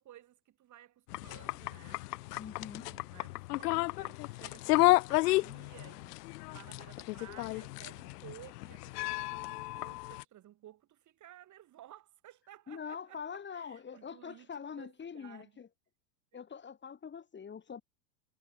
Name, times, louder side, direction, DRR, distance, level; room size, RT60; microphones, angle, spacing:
voice 1, 0.0-2.1 2.5-6.2 6.5-15.5 16.3-16.4, right 13 dB, 35° right, 3.3 m, -55 dB
sound 1, 1.1-10.2, left 21 dB, 65° left, 0.6 m, -32 dB
voice 2, 2.4-2.9 12.7-15.7 16.3-17.8, left 7 dB, 20° left, 4.3 m, -44 dB
hypercardioid pair, 105°, 50 cm